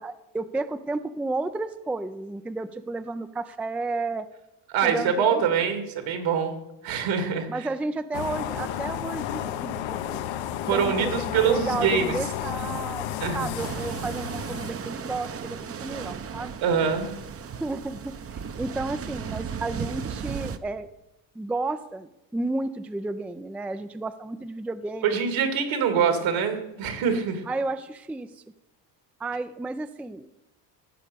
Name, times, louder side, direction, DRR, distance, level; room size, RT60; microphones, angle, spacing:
voice 1, 0.0-4.3 4.8-5.7 7.5-9.8 10.1-10.2 10.7-16.5 17.6-20.9 21.4-25.3 27.5-28.4 29.2-30.3, right 2 dB, 5° right, 11 dB, 0.4 m, -32 dB
voice 2, 4.7-6.5 6.8-7.7 10.7-12.1 13.2-13.5 16.6-17.1 25.0-27.4, right 7 dB, 75° right, 7 dB, 2.5 m, -24 dB
sound 1, 8.1-14.7, left 11 dB, 70° left, 1.0 m, -32 dB
sound 2, 13.6-20.6, right 7 dB, 30° right, 0.7 m, -35 dB
15.5 x 5.2 x 6.8 m, 0.92 s
supercardioid pair, 90°, 47 cm